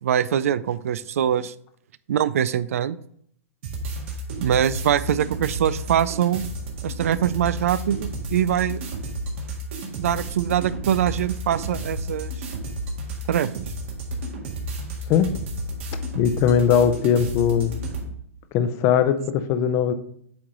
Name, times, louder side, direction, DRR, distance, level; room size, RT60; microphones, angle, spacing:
voice 1, 0.0-1.5 2.1-3.0 4.4-6.4 6.8-8.8 10.0-12.3 13.3-13.6, right 10 dB, 75° right, 17 dB, 0.3 m, -23 dB
sound 1, 3.6-18.1, right 1 dB, 60° right, 1.7 m, -32 dB
voice 2, 16.1-17.7 18.5-19.9, left 8 dB, 35° left, 10 dB, 0.6 m, -20 dB
8.5 x 3.1 x 3.8 m, 0.66 s
hypercardioid pair, 130°, 8 cm